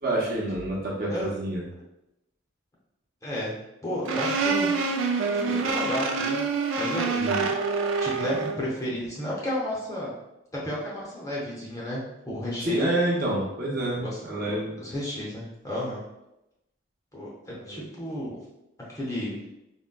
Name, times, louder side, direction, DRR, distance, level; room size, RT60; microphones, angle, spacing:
voice 1, 0.0-1.6 7.1-7.4 12.6-14.8 17.6-17.9, right 1 dB, 50° right, -4 dB, 0.7 m, -28 dB
voice 2, 3.2-3.5 3.8-4.7 5.3-6.4 6.8-7.2 8.0-10.1 10.5-12.9 14.0-16.0 17.1-18.4 18.9-19.4, left 1 dB, 15° left, -5 dB, 0.6 m, -32 dB
sound 1, 4.1-8.6, right 4 dB, 75° right, 0.4 m, -26 dB
3.7 x 2.1 x 2.2 m, 0.90 s
head